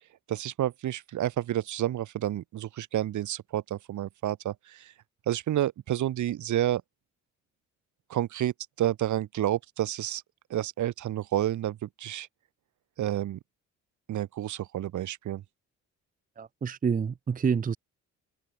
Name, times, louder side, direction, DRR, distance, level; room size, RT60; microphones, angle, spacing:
voice 1, 0.3-4.9 5.3-6.8 8.1-10.2 10.5-12.3 13.0-13.4 14.1-15.4, right 12 dB, 75° right, 2.9 m, -30 dB
voice 2, 16.4-17.8, right 6 dB, 30° right, 0.7 m, -28 dB
cardioid pair, 90°, 30 cm